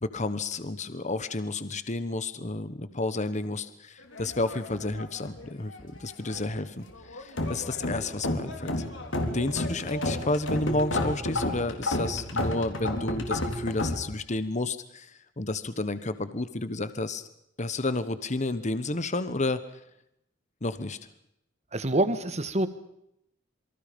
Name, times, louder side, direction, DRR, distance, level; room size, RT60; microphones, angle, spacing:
voice 1, 0.0-8.9 9.3-17.3 17.6-19.8 20.6-21.0, left 2 dB, 40° left, 12 dB, 1.2 m, -31 dB
sound 1, 4.1-5.5 5.7-6.5 6.9-14.0, left 1 dB, 80° left, 4.1 m, -31 dB
voice 2, 21.7-22.7, right 1 dB, 35° right, 11 dB, 1.8 m, -26 dB
27.5 x 24.0 x 5.4 m, 0.78 s
head